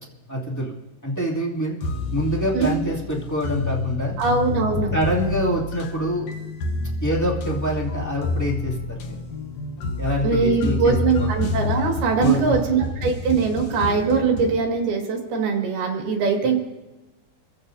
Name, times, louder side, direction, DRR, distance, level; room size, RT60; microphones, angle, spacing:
voice 1, 0.3-0.7 1.0-1.7 2.1-4.2 4.9-6.3 7.0-9.2 10.0-11.3 12.2-12.6, equal, 10° left, -5 dB, 0.8 m, -25 dB
sound 1, 1.8-14.6, left 3 dB, 75° left, 1.6 m, -29 dB
voice 2, 4.2-4.9 10.2-16.6, right 5 dB, 65° right, 1 dB, 3.7 m, -21 dB
27.5 x 15.5 x 2.7 m, 1.1 s
omnidirectional pair, 5.1 m